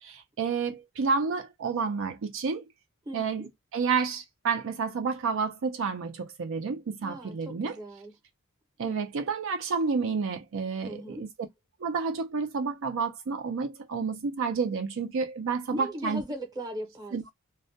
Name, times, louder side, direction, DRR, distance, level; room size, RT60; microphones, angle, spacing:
voice 1, 0.0-2.7 3.1-7.8 8.8-11.3 11.8-16.2 17.1-17.3, right 5 dB, 60° right, 0.5 m, -30 dB
voice 2, 3.0-3.5 7.0-8.1 8.8-9.0 10.8-11.3 15.7-17.3, equal, 15° right, 0.7 m, -39 dB
2.3 x 2.1 x 2.7 m
head